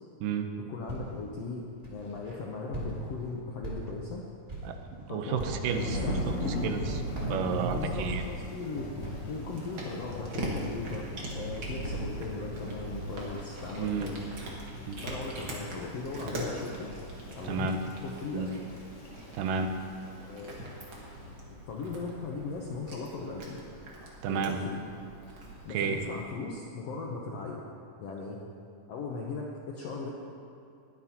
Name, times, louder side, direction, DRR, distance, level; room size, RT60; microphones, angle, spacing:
voice 1, 0.6-4.2 5.1-6.2 7.7-8.9 9.3-14.2 15.0-16.9 17.3-17.8 18.0-18.5 20.2-20.6 20.9-21.4 21.6-23.6 24.3-24.8 25.6-27.6 28.0-28.4 28.9-30.1, left 4 dB, 75° left, -2 dB, 1.4 m, -38 dB
Walk footsteps, 0.9-1.3 1.8-2.3 2.7-3.2 3.6-4.1 4.5-4.8 5.3-5.7 6.2-6.7 7.1-8.6 9.0-9.4, right 2 dB, 15° right, 1.8 m, -39 dB
voice 2, 4.6-6.0 6.3-8.2 13.8-14.1 14.9-15.0 17.4-17.8 18.3-18.5 19.3-19.7 24.2-24.6 25.7-26.0, right 6 dB, 80° right, 6 dB, 2.4 m, -32 dB
Thunder / Rain, 5.6-21.2, equal, 50° left, 2.2 m, -39 dB
Cat, 9.1-26.2, right 1 dB, 45° right, 1.9 m, -43 dB
20.5 x 9.5 x 2.9 m, 2.6 s
omnidirectional pair, 4.0 m